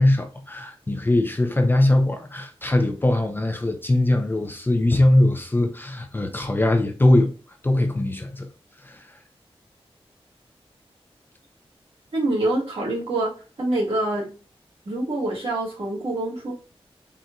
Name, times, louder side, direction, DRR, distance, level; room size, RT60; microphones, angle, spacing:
voice 1, 0.0-7.3 7.6-8.5 8.8-9.1, left 1 dB, 20° left, 0.4 m, -21 dB
voice 2, 12.1-13.3 13.6-14.2 14.8-16.5, right 2 dB, 65° right, 1.7 m, -25 dB
4.1 x 2.5 x 2.2 m
wide cardioid pair, 120°, 10 cm